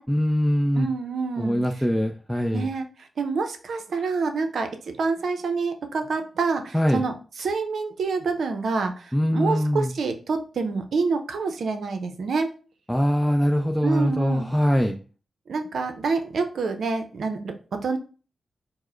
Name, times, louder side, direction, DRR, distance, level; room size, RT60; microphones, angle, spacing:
voice 1, 0.1-0.9 1.4-2.7 6.7-7.0 9.1-9.9 12.9-15.0, equal, ahead, 2 dB, 0.5 m, -22 dB
voice 2, 0.8-1.6 2.5-2.9 3.2-12.5 13.8-14.5 15.5-18.0, right 4 dB, 70° right, 6 dB, 0.6 m, -27 dB
4.6 x 2.1 x 4.4 m, 0.38 s
supercardioid pair, 45°, 0 cm